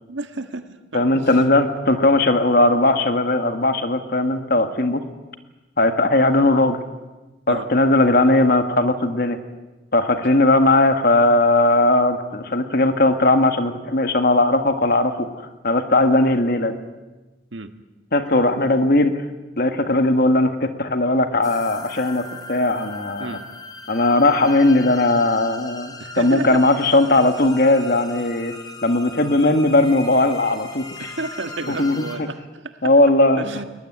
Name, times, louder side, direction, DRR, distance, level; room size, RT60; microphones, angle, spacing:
voice 1, 0.1-1.3 7.5-7.7 17.5-17.7 23.2-23.4 26.0-27.1 31.0-32.9 33.4-33.6, right 3 dB, 85° right, 8 dB, 1.7 m, -32 dB
voice 2, 0.9-5.0 5.8-6.8 7.5-9.4 9.9-16.8 18.1-19.2 19.6-23.4 23.9-28.6 28.8-30.9 31.7-32.0 32.8-33.4, left 2 dB, 55° left, 8 dB, 1.8 m, -18 dB
sound 1, 21.4-32.2, left 3 dB, 20° left, 3.2 m, -38 dB
21.5 x 20.0 x 9.4 m, 1.1 s
head